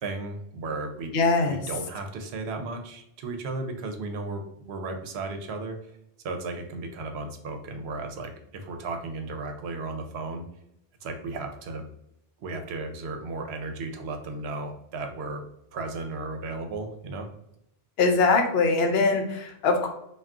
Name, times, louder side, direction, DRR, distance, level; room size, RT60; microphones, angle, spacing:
voice 1, 0.0-1.1 1.5-5.8 6.2-10.4 11.0-11.9 12.4-15.4 15.7-17.3, right 3 dB, 80° right, 5 dB, 0.8 m, -35 dB
voice 2, 1.1-1.6 18.0-19.9, left 3 dB, 75° left, 4 dB, 0.8 m, -22 dB
2.3 x 2.3 x 3.6 m, 0.78 s
omnidirectional pair, 1.1 m